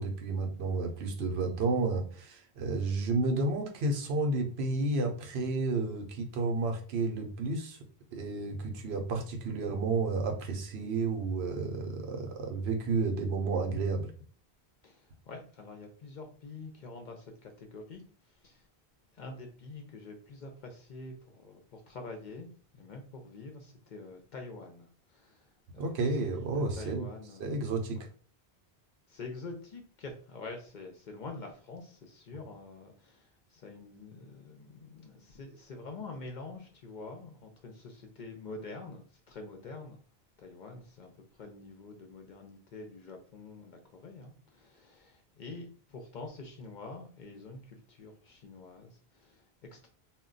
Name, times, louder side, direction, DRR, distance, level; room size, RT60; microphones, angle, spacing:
voice 1, 0.0-7.8 8.1-14.1 25.8-27.1 27.4-28.0, right 3 dB, 75° right, 0.9 m, -31 dB
voice 2, 14.8-18.7 19.1-27.4 27.9-28.0 29.1-40.0 40.4-49.9, left 3 dB, 55° left, 0.6 m, -46 dB
2.2 x 2.2 x 3.7 m
omnidirectional pair, 1.1 m